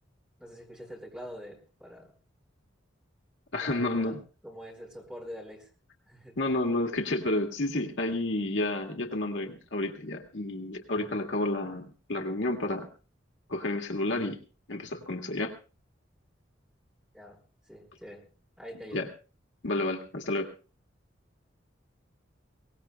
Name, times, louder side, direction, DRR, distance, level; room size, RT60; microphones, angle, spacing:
voice 1, 0.4-2.1 3.6-4.2 4.4-5.7 6.0-6.4 17.1-18.3 18.6-19.1, equal, 5° right, 0 dB, 4.2 m, -45 dB
voice 2, 3.5-4.2 6.4-12.9 13.5-14.4 14.7-15.5 18.9-19.1 19.6-20.5, left 2 dB, 75° left, 2 dB, 1.8 m, -30 dB
22.5 x 18.5 x 2.3 m, 0.36 s
head